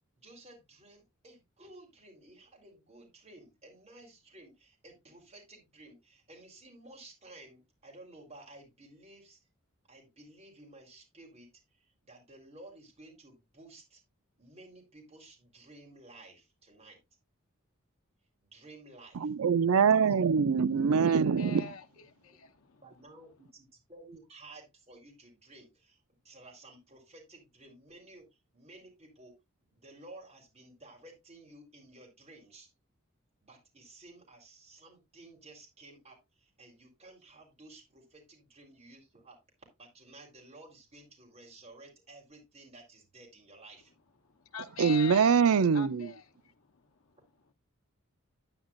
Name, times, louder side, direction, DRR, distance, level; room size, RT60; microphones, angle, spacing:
voice 1, 0.2-9.4 9.9-11.5 12.0-14.0 14.4-17.0 18.4-19.3 20.0-20.1 21.4-21.5 22.0-22.1 22.8-26.0 26.2-28.3 28.5-29.3 29.7-32.7 33.4-39.4 39.8-43.9, right 2 dB, 30° right, 3.8 m, -54 dB
voice 2, 19.1-21.6 44.8-46.1, right 6 dB, 80° right, 0.5 m, -24 dB
voice 3, 21.1-21.9 22.2-22.8 44.5-45.4 45.7-46.5, left 6 dB, 80° left, 0.9 m, -43 dB
9.9 x 9.5 x 2.5 m
head